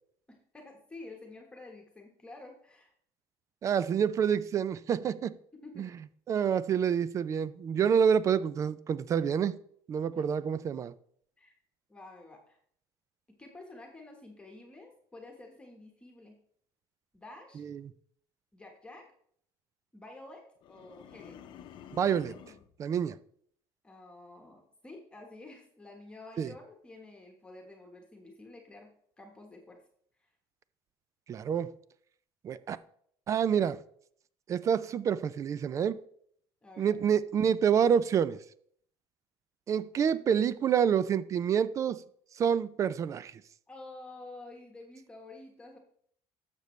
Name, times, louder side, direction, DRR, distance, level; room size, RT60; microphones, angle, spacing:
voice 1, 0.3-2.9 5.5-5.9 10.1-10.2 11.4-11.5 11.9-12.6 13.4-16.3 17.1-17.6 18.5-19.1 19.9-21.5 23.8-29.8 30.2-30.3 36.6-37.1 43.7-45.8, left 2 dB, 10° left, 1.3 m, -50 dB
voice 2, 3.6-5.4 5.8-5.9 6.3-9.6 9.9-10.9 17.6-17.8 21.9-22.4 22.8-23.2 26.4-26.5 31.3-31.7 32.4-32.8 33.3-33.8 34.5-36.0 36.8-38.4 39.7-42.0 42.4-43.3, right 8 dB, 35° right, 0.4 m, -27 dB
sound 1, 20.6-22.7, left 9 dB, 50° left, 0.8 m, -50 dB
11.5 x 6.8 x 3.2 m
cardioid pair, 135°, 10 cm